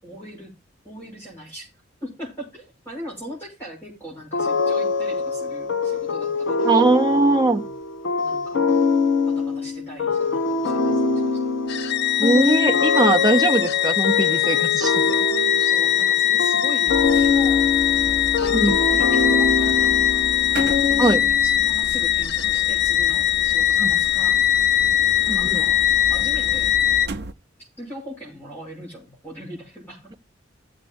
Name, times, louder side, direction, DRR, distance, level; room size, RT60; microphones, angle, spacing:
voice 1, 0.0-0.5 0.8-1.7 2.0-6.7 7.0-7.7 8.2-8.6 9.2-11.5 15.0-17.7 17.9-18.0 18.4-20.2 20.9-24.4 25.2-26.8 27.8-30.1, equal, 10° left, 6.2 m, -40 dB
sound 1, 4.3-21.5, left 4 dB, 85° left, 1.5 m, -24 dB
voice 2, 6.6-7.6 12.2-15.0 18.5-18.8 21.0-21.2 23.8-23.9 25.3-25.6, right 2 dB, 20° right, 0.7 m, -20 dB
sound 2, 11.7-27.1, left 12 dB, 60° left, 0.6 m, -21 dB
sound 3, 16.9-27.3, right 2 dB, 60° right, 0.6 m, -35 dB
17.0 x 7.4 x 2.4 m
head